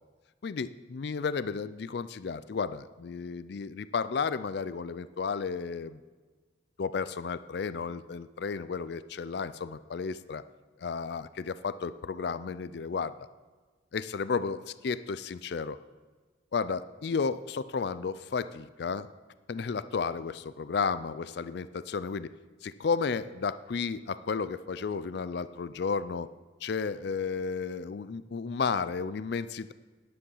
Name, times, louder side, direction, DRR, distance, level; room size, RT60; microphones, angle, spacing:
voice 1, 0.4-6.0 6.8-10.4 10.8-13.1 13.9-15.8 16.5-19.1 19.5-22.3 22.6-26.3 26.6-29.7, left 5 dB, 55° left, 15 dB, 0.4 m, -33 dB
10.0 x 9.8 x 5.5 m, 1.4 s
head